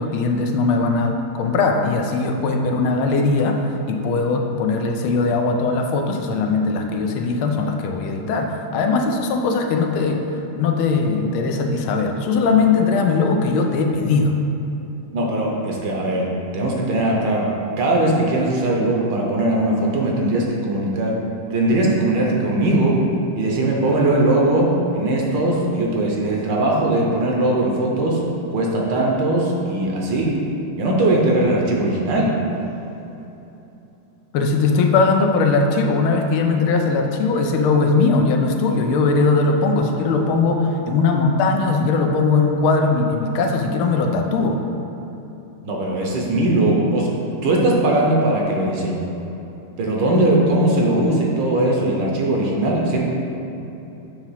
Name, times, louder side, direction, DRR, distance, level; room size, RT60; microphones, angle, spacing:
voice 1, 0.0-10.2 10.6-14.4 34.3-44.6, left 4 dB, 80° left, 3 dB, 1.5 m, -19 dB
voice 2, 15.1-16.3 16.5-17.5 17.8-21.2 21.5-23.0 23.3-28.2 28.5-30.4 30.8-32.3 45.6-49.0 49.8-53.1, right 1 dB, 65° right, -2 dB, 1.4 m, -20 dB
7.1 x 3.0 x 5.5 m, 3.0 s
omnidirectional pair, 2.3 m